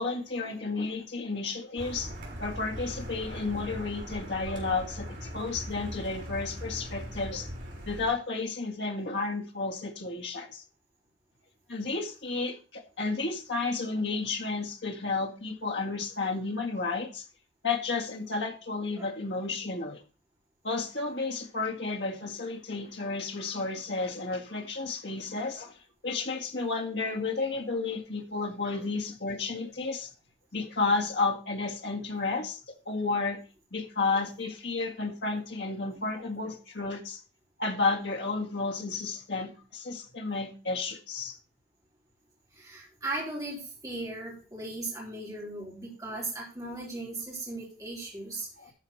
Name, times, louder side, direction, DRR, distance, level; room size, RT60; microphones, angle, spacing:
voice 1, 0.0-2.1 2.4-7.5 7.9-10.6 11.7-17.2 17.6-20.0 20.6-25.7 26.0-30.1 30.5-33.4 33.7-37.2 37.6-41.4 48.6-48.7, left 3 dB, 75° left, 1.8 m, -32 dB
Car, 1.8-8.1, equal, 80° right, 3.8 m, -40 dB
voice 2, 42.5-48.5, right 2 dB, 20° right, 3.2 m, -37 dB
12.0 x 4.6 x 5.5 m
head